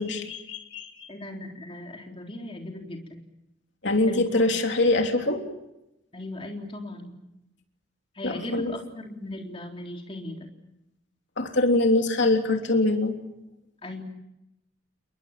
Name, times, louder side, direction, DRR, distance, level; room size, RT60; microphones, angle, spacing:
voice 1, 0.0-1.1 3.8-5.4 8.2-8.7 11.4-13.1, left 2 dB, 60° left, 4 dB, 3.2 m, -24 dB
voice 2, 1.1-3.2 4.1-4.4 6.1-7.1 8.2-10.5 13.8-14.0, left 1 dB, 25° left, 1 dB, 3.8 m, -38 dB
29.5 x 22.5 x 7.5 m, 0.89 s
head